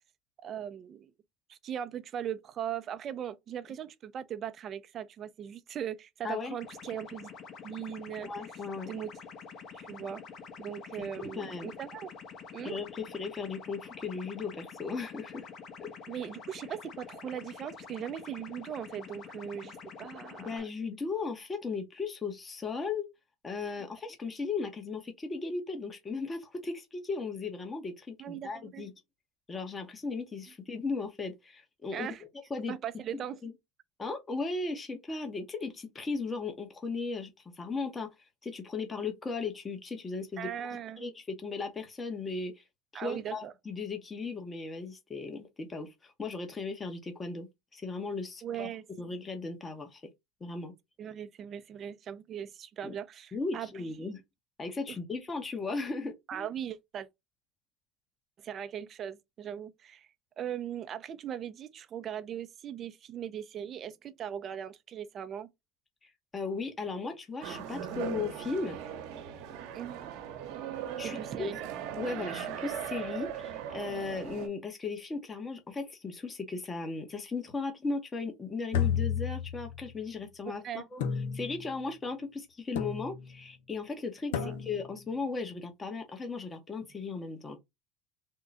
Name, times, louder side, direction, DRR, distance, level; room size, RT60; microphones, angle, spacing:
voice 1, 0.4-1.1 1.5-7.3 7.6-8.3 8.9-9.1 9.7-10.2 10.6-12.1 12.5-12.8 16.1-20.7 28.2-28.9 31.9-32.2 32.7-33.4 40.4-41.0 42.9-43.5 48.4-48.8 51.0-53.7 54.0-54.1 54.9-55.0 56.3-57.1 58.4-60.1 60.4-65.5 69.7-70.1 71.0-71.7 80.5-80.9 84.3-84.6, right 9 dB, 40° right, 0.6 m, -39 dB
voice 2, 6.2-6.6 8.2-8.9 11.0-11.7 12.6-15.5 15.8-15.9 20.4-23.1 23.4-28.9 29.5-32.1 32.5-32.8 33.4-33.5 34.0-38.1 38.4-42.6 42.9-48.7 49.0-50.0 50.4-50.7 52.8-52.9 53.3-54.2 54.6-56.5 66.0-68.8 71.0-71.5 72.0-80.6 80.9-81.0 81.3-87.6, left 4 dB, 20° left, 0.9 m, -36 dB
sound 1, 6.6-20.6, left 5 dB, 45° left, 1.0 m, -47 dB
sound 2, 67.4-74.5, right 9 dB, 70° right, 1.0 m, -39 dB
sound 3, 78.7-79.9 81.0-81.8 82.8-83.4 84.3-85.0, left 8 dB, 90° left, 0.7 m, -32 dB
3.7 x 2.2 x 3.9 m
supercardioid pair, 110°, 0 cm